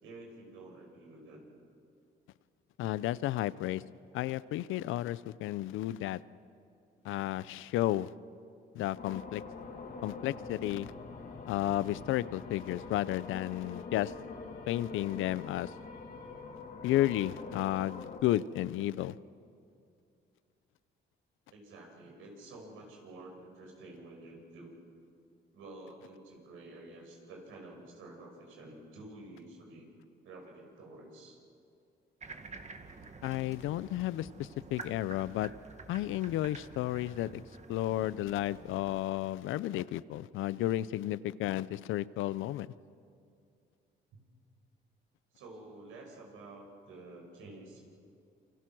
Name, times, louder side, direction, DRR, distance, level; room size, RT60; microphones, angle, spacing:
voice 1, 0.0-1.5 21.5-24.8 25.5-29.9 30.2-31.4 44.1-44.2 45.3-47.8, right 2 dB, 90° right, 1 dB, 6.3 m, -50 dB
voice 2, 2.8-3.8 4.1-6.2 7.0-8.1 8.7-9.4 10.0-10.9 11.5-14.1 14.7-15.7 16.8-19.1 33.2-35.5 35.9-37.4 37.7-42.7, left 14 dB, 90° left, 18 dB, 0.6 m, -32 dB
sound 1, 9.0-18.2, left 4 dB, 45° left, 3.1 m, -45 dB
sound 2, 32.2-39.0, right 4 dB, 35° right, 2.0 m, -49 dB
28.5 x 25.0 x 6.2 m, 2.4 s
cardioid pair, 90°, 20 cm